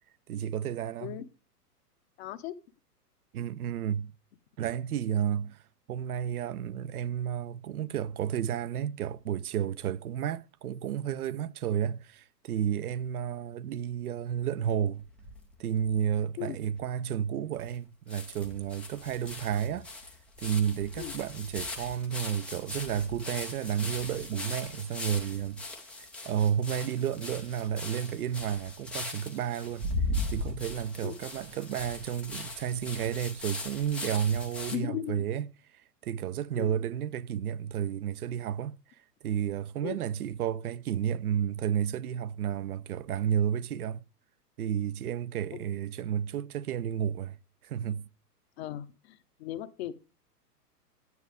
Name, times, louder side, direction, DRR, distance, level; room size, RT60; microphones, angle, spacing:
voice 1, 0.3-1.2 3.3-4.1 4.6-5.6 5.9-15.0 15.6-19.9 20.4-25.6 26.3-29.9 30.3-35.5 35.7-38.8 39.2-44.0 44.6-47.4 47.6-48.1, right 9 dB, 65° right, 0.6 m, -32 dB
voice 2, 2.2-2.6 16.4-16.6 21.0-21.1 31.0-31.2 34.7-35.2 36.6-36.7 39.8-40.0 45.5-45.6 48.6-49.9, left 12 dB, 40° left, 0.9 m, -37 dB
sound 1, 15.0-15.9 16.5-16.6 16.7-16.8 17.7-17.8 18.1-34.8, left 2 dB, ahead, 0.4 m, -39 dB
11.0 x 9.5 x 3.5 m
hypercardioid pair, 115°, 48 cm